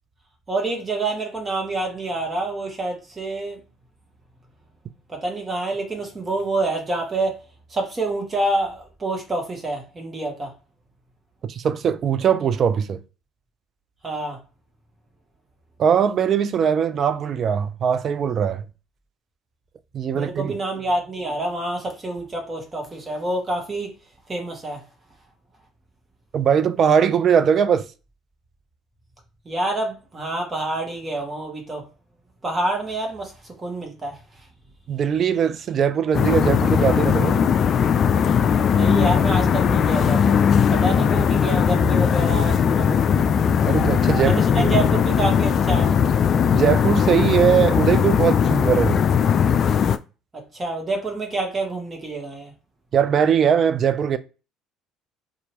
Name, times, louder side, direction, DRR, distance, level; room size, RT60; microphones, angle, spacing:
voice 1, 0.5-3.6 5.1-7.3 7.7-10.5 14.0-14.4 20.1-23.9 24.3-24.8 29.4-31.8 32.4-33.3 33.6-34.2 38.7-40.4 40.7-43.0 44.2-45.9 50.5-52.5, right 2 dB, 25° right, 1.3 m, -27 dB
voice 2, 11.4-13.0 15.8-18.6 19.9-20.6 26.3-27.9 34.9-37.5 43.7-44.7 46.5-49.0 52.9-54.2, right 8 dB, 50° right, 0.4 m, -20 dB
sound 1, 36.1-50.0, left 7 dB, 50° left, 0.3 m, -19 dB
2.9 x 2.5 x 2.9 m
hypercardioid pair, 65°, 0 cm